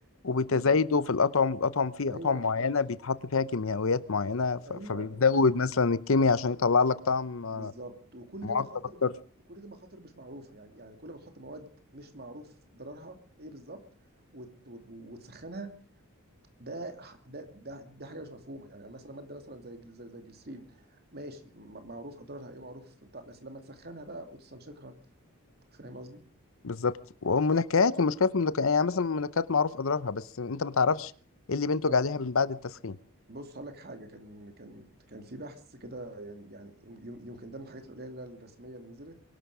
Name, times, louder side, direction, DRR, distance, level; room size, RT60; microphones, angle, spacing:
voice 1, 0.2-7.7 8.4-8.6 9.0-9.1 26.6-27.0 27.2-31.1 31.5-33.0, left 4 dB, 60° left, 17 dB, 0.7 m, -26 dB
voice 2, 2.1-2.7 4.6-5.3 6.2-6.3 7.5-9.0 9.5-13.8 14.3-15.7 16.6-24.9 25.7-26.2 31.9-32.0 33.3-39.2, right 1 dB, 45° right, 7 dB, 2.7 m, -45 dB
23.5 x 11.5 x 4.9 m, 0.43 s
head